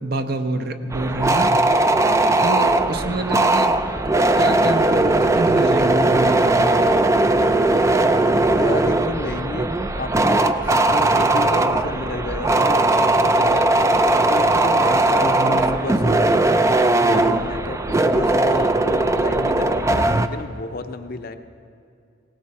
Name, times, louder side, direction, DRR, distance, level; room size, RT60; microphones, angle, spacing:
voice 1, 0.0-1.6 2.4-3.7 4.4-7.1 15.3-16.1, right 2 dB, 50° right, 7 dB, 0.8 m, -26 dB
sound 1, 0.9-20.3, right 2 dB, 15° right, 0.4 m, -18 dB
voice 2, 1.1-1.4 1.9-2.3 8.2-16.4 16.8-21.4, left 3 dB, 50° left, 8 dB, 0.6 m, -32 dB
19.0 x 17.5 x 4.2 m, 2.4 s
head